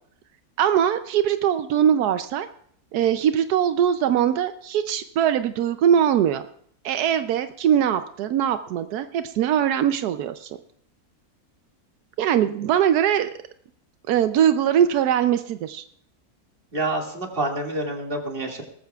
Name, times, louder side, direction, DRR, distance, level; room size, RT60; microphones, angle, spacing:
voice 1, 0.6-2.5 2.9-6.4 6.8-10.6 12.2-13.3 14.1-15.8, right 9 dB, 85° right, 10 dB, 1.2 m, -21 dB
voice 2, 16.7-18.6, right 2 dB, 35° right, 1 dB, 2.3 m, -27 dB
19.0 x 14.0 x 2.3 m, 0.63 s
omnidirectional pair, 1.6 m